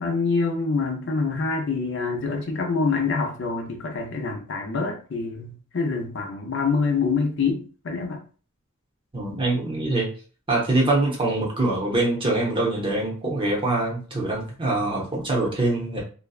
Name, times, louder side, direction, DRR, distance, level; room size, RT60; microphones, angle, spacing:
voice 1, 0.0-8.2, left 4 dB, 60° left, 3 dB, 0.5 m, -26 dB
voice 2, 9.1-10.1 10.5-16.0, right 2 dB, 25° right, -2 dB, 0.7 m, -24 dB
2.6 x 2.2 x 2.3 m, 0.39 s
head